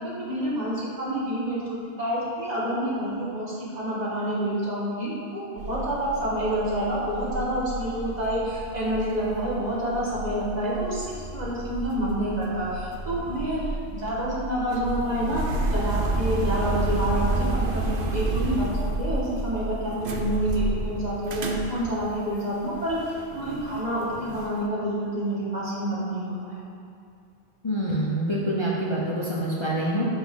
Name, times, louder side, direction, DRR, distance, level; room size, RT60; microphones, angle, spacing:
voice 1, 0.0-11.1 11.3-15.4 15.7-26.6, right 1 dB, 40° right, -7 dB, 1.9 m, -28 dB
sound 1, 5.6-24.5, right 2 dB, 60° right, 0.9 m, -31 dB
voice 2, 27.6-30.1, right 1 dB, 25° left, -6 dB, 0.9 m, -26 dB
11.0 x 5.1 x 3.8 m, 2.4 s
omnidirectional pair, 1.1 m